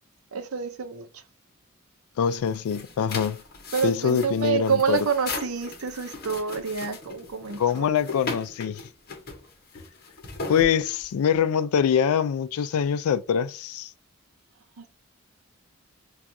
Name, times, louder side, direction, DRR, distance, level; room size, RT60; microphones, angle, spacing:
voice 1, 0.3-1.2 3.7-7.9 14.8-14.9, right 6 dB, 85° right, 0.6 m, -28 dB
voice 2, 2.2-3.4 3.8-5.0 7.6-8.8 10.5-13.9, left 7 dB, 90° left, 0.3 m, -24 dB
sound 1, 2.2-11.4, left 3 dB, 45° left, 0.9 m, -38 dB
4.6 x 2.3 x 2.6 m
head